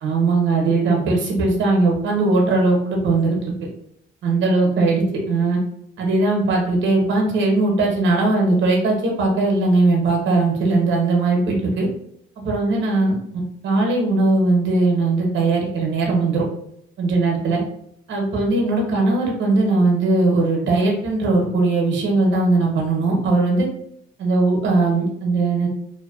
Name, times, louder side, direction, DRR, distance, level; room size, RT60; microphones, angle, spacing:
voice 1, 0.0-3.7 4.2-5.6 6.0-11.9 12.4-16.5 17.0-17.6 18.1-23.7 24.2-25.7, right 3 dB, 70° right, 0 dB, 0.8 m, -19 dB
2.5 x 2.2 x 2.4 m, 0.71 s
cardioid pair, 90°, 20 cm